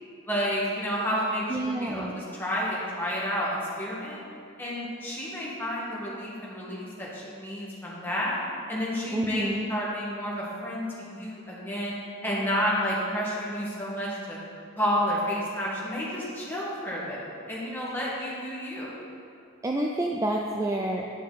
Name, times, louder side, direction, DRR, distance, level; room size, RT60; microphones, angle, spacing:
voice 1, 0.3-4.2 4.6-8.4 8.7-11.9 12.2-14.4 14.8-17.2 17.5-18.9, equal, 10° left, -7 dB, 1.6 m, -30 dB
voice 2, 1.5-2.2 9.1-9.7 19.6-21.1, right 1 dB, 15° right, 0 dB, 0.3 m, -28 dB
10.5 x 5.9 x 4.1 m, 2.5 s
head